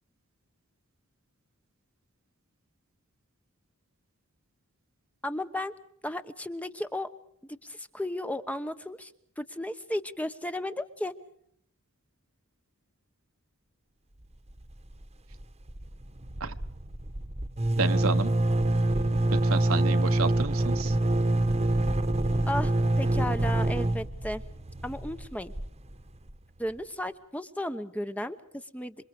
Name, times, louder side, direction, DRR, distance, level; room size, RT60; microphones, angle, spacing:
voice 1, 5.2-5.7 6.0-7.1 7.4-11.1 22.5-22.7 23.0-24.4 24.8-25.5 26.6-29.0, left 1 dB, 5° left, 10 dB, 1.0 m, -34 dB
sound 1, 14.5-15.0 15.3-15.4 15.7-26.3, right 1 dB, 30° right, 1.3 m, -26 dB
voice 2, 17.8-18.3 19.3-21.0, right 4 dB, 70° right, 9 dB, 1.3 m, -31 dB
28.0 x 25.0 x 5.0 m, 0.69 s
head